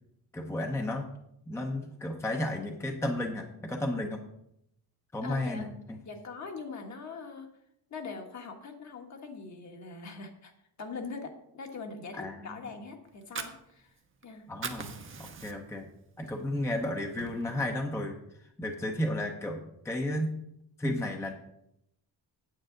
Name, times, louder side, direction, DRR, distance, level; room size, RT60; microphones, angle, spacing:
voice 1, 0.3-1.1 1.5-4.2 5.1-6.0 12.1-12.7 14.5-15.9 16.2-20.3 20.8-21.3, left 1 dB, 5° left, 3 dB, 0.8 m, -33 dB
voice 2, 5.2-5.6 6.0-7.5 7.9-10.5 10.8-13.9 14.2-14.5, left 4 dB, 45° left, 3 dB, 1.4 m, -42 dB
Fire, 13.1-14.2 14.5-15.9 16.3-16.4 16.8-17.8, right 5 dB, 30° right, 0.8 m, -40 dB
9.0 x 7.9 x 3.8 m, 0.76 s
cardioid pair, 135°, 39 cm